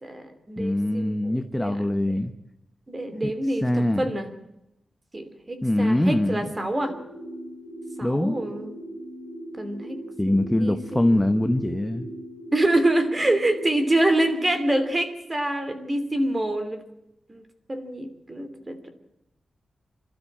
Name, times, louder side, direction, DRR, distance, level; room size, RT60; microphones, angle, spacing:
voice 1, 0.0-1.9 2.9-4.3 5.1-6.9 8.0-8.7 9.6-11.2 12.5-16.8 17.3-17.4 17.7-18.9, right 1 dB, 20° right, 9 dB, 3.0 m, -26 dB
voice 2, 0.6-2.3 3.2-3.3 3.6-4.0 5.6-6.5 8.0-8.4 10.2-12.1, left 1 dB, 10° left, 8 dB, 1.0 m, -23 dB
sound 1, 6.8-14.8, right 1 dB, 40° right, 7.3 m, -39 dB
27.5 x 13.0 x 8.7 m, 0.88 s
wide cardioid pair, 135°, 0 cm